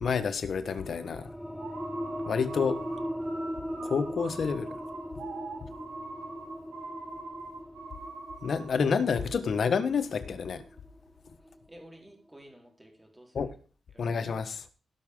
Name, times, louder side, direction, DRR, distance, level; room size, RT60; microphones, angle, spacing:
voice 1, 0.0-1.3 2.2-2.8 3.8-4.8 8.4-10.6 13.3-13.5 14.0-14.6, left 6 dB, 65° left, 9 dB, 1.3 m, -29 dB
sound 1, 0.7-11.9, equal, ahead, 1.0 m, -39 dB
sound 2, 1.6-8.8, right 3 dB, 90° right, 4.3 m, -43 dB
voice 2, 11.7-13.5 13.9-14.2, right 1 dB, 15° right, 1 dB, 4.0 m, -53 dB
17.0 x 6.2 x 3.8 m, 0.39 s
cardioid pair, 75°, 0 cm